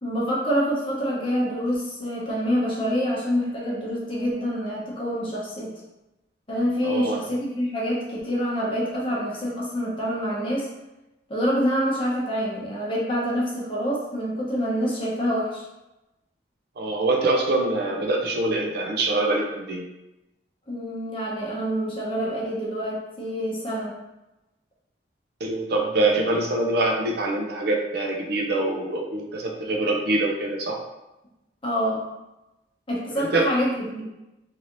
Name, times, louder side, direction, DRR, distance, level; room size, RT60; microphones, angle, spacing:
voice 1, 0.0-5.8 6.5-10.7 11.3-15.6 20.7-23.9 31.6-32.1 32.9-34.0, equal, 30° left, -5 dB, 0.9 m, -26 dB
voice 2, 6.8-7.2 16.8-19.9 25.4-30.8 33.2-33.5, right 2 dB, 60° right, 1 dB, 0.5 m, -24 dB
3.1 x 2.8 x 2.6 m, 0.96 s
head